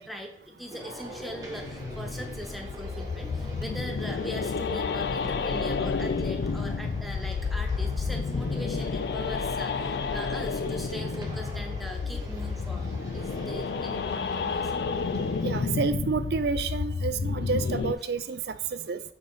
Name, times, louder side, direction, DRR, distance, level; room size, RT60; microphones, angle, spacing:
voice 1, 0.0-14.7, equal, ahead, 3 dB, 0.8 m, -41 dB
sound 1, 0.7-15.7, right 1 dB, 20° right, 1.1 m, -44 dB
sound 2, 0.9-17.9, left 4 dB, 55° left, 0.3 m, -31 dB
voice 2, 15.4-19.0, right 5 dB, 60° right, 13 dB, 0.4 m, -29 dB
8.9 x 4.0 x 3.4 m, 0.71 s
head